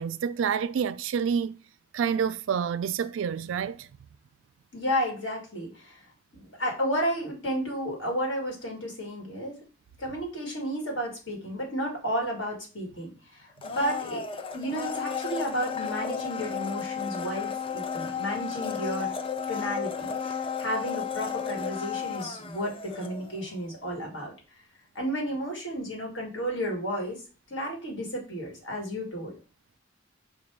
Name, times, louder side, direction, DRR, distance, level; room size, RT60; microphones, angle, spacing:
voice 1, 0.0-1.6 1.9-3.9, right 7 dB, 75° right, 0.3 m, -28 dB
voice 2, 4.7-6.0 6.4-9.6 10.0-14.2 14.5-19.1 19.5-20.1 20.6-24.3 24.9-27.2 27.5-29.3, equal, 65° left, 1.6 m, -32 dB
Domestic sounds home sounds, 13.6-23.5 23.8-23.9, left 7 dB, 25° left, 0.3 m, -33 dB
5.2 x 2.2 x 4.5 m
head